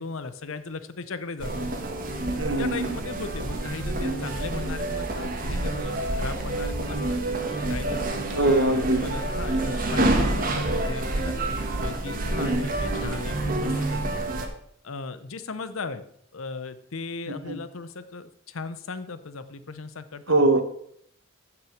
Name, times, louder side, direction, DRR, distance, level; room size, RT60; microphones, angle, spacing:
voice 1, 0.0-1.7 2.6-7.2 7.7-11.4 11.8-14.2 14.8-16.0 16.3-20.5, left 4 dB, 75° left, 12 dB, 0.8 m, -37 dB
sound 1, 1.4-14.5, right 2 dB, 40° right, 1.3 m, -28 dB
voice 2, 2.4-2.9 8.3-9.1 12.4-12.7 17.3-17.6 20.3-20.6, right 2 dB, 65° right, 7 dB, 1.3 m, -23 dB
9.3 x 6.0 x 6.4 m, 0.67 s
head